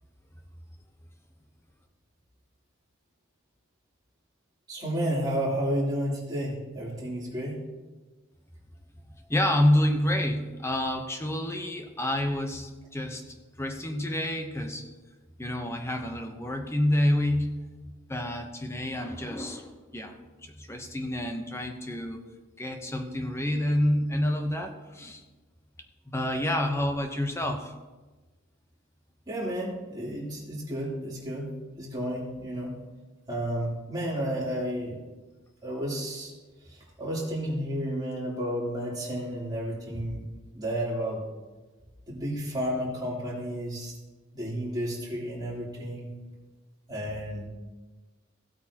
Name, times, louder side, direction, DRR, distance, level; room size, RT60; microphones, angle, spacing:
voice 1, 4.7-7.6 29.3-31.5 31.8-32.7 33.3-35.0 35.6-36.3 36.7-40.3 40.5-41.2 42.1-43.9 44.3-46.1 46.9-47.4, equal, 20° right, -6 dB, 3.2 m, -31 dB
voice 2, 9.3-13.2 13.6-14.9 15.4-17.6 18.1-20.2 20.4-22.2 22.6-25.2 26.1-27.7, left 1 dB, 15° left, 4 dB, 0.8 m, -28 dB
16.0 x 8.5 x 2.9 m, 1.2 s
head